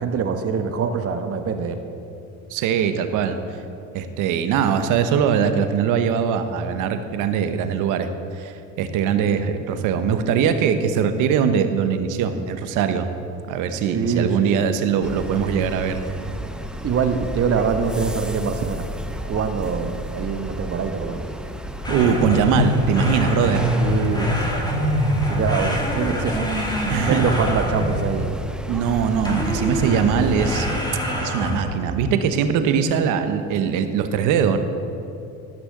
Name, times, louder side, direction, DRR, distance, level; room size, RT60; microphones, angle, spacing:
voice 1, 0.0-1.8 13.9-14.6 16.8-18.9 19.2-21.2 23.7-24.5 25.3-26.4 27.0-28.3, right 6 dB, 45° right, 7 dB, 1.1 m, -24 dB
voice 2, 2.5-3.4 3.9-13.1 13.5-16.0 21.9-23.6 26.9-27.2 28.7-30.7 31.2-34.6, right 7 dB, 75° right, 8 dB, 1.0 m, -21 dB
sound 1, 15.0-30.8, right 1 dB, 5° right, 0.6 m, -33 dB
sound 2, 21.8-28.3 29.3-31.8, equal, 15° left, 2.5 m, -24 dB
13.5 x 6.3 x 6.6 m, 2.7 s
supercardioid pair, 90°, 32 cm